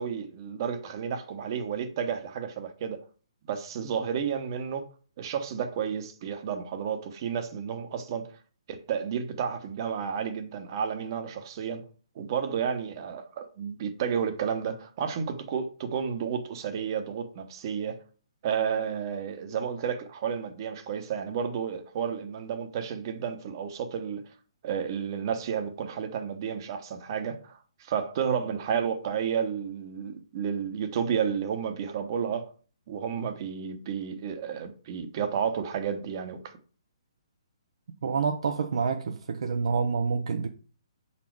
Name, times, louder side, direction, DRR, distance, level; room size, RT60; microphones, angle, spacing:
voice 1, 0.0-3.0 3.5-4.9 5.2-8.3 8.7-11.9 12.1-18.0 18.4-24.3 24.6-32.5 32.9-36.5, right 7 dB, 45° right, 1.0 m, -31 dB
voice 2, 38.0-40.5, right 5 dB, 65° right, 0.6 m, -28 dB
5.7 x 4.2 x 4.6 m
hypercardioid pair, 135°, 3 cm